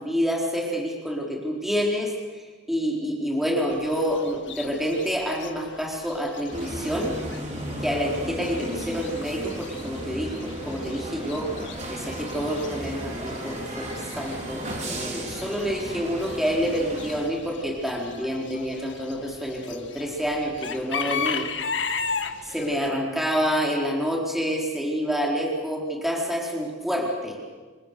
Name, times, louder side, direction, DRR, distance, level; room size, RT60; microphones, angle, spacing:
voice 1, 0.0-2.1 2.7-7.2 7.8-11.5 11.9-13.9 14.2-21.5 22.4-27.4, equal, ahead, -2 dB, 4.1 m, -28 dB
Chicken rooster / Bird, 3.7-22.9, left 5 dB, 80° left, 1.7 m, -37 dB
sound 1, 6.5-17.3, right 1 dB, 40° right, 4.8 m, -35 dB
28.0 x 24.5 x 6.8 m, 1.4 s
head